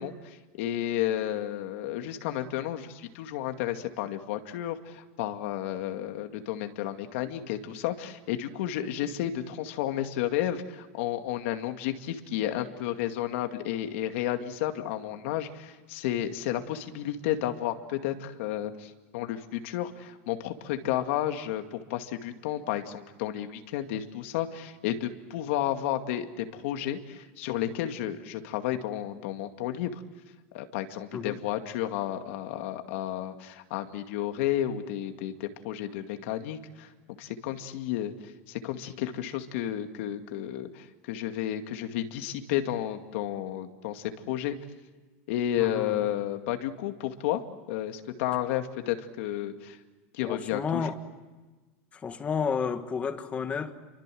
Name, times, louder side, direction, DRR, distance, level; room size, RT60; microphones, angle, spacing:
voice 1, 0.0-30.0 30.5-36.9 37.2-38.1 38.5-44.6 45.3-47.4 47.7-49.8 50.1-50.9, left 12 dB, 65° left, 2.3 m, -32 dB
voice 2, 45.6-46.1 50.2-51.0 51.9-53.7, left 6 dB, 20° left, 1.5 m, -31 dB
29.5 x 24.5 x 7.8 m
supercardioid pair, 165°, 7 cm